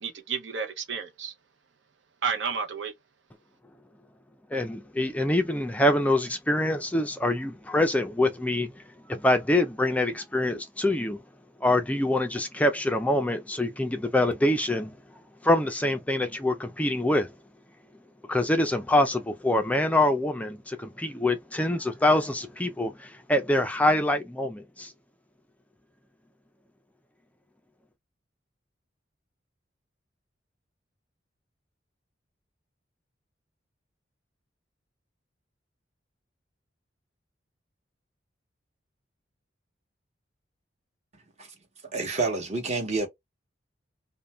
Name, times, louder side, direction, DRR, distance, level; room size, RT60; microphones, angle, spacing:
voice 1, 0.0-1.3 2.2-2.9, right 6 dB, 70° right, 0.7 m, -31 dB
voice 2, 4.5-8.7 9.1-11.2 11.6-14.9 15.4-17.3 18.3-24.9, left 1 dB, 10° left, 0.4 m, -25 dB
voice 3, 41.9-43.1, right 3 dB, 35° right, 1.0 m, -28 dB
2.4 x 2.1 x 3.0 m
head